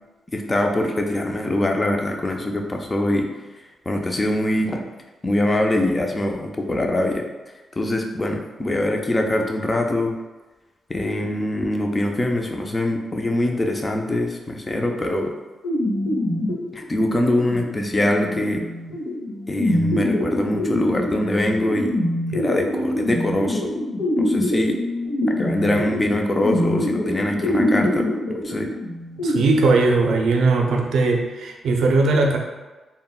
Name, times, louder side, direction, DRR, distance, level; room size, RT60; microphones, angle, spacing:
voice 1, 0.3-3.3 3.9-4.8 5.2-7.2 7.8-10.1 10.9-15.3 16.7-18.6 19.5-21.9 22.3-23.7 24.2-24.8 25.3-28.1 28.4-28.7, left 1 dB, 20° left, 2 dB, 0.4 m, -23 dB
sound 1, 15.6-29.4, left 1 dB, 90° left, 1.0 m, -25 dB
voice 2, 29.2-32.4, right 3 dB, 85° right, 1 dB, 0.4 m, -19 dB
3.5 x 2.1 x 2.3 m, 1.2 s
cardioid pair, 105°, 0 cm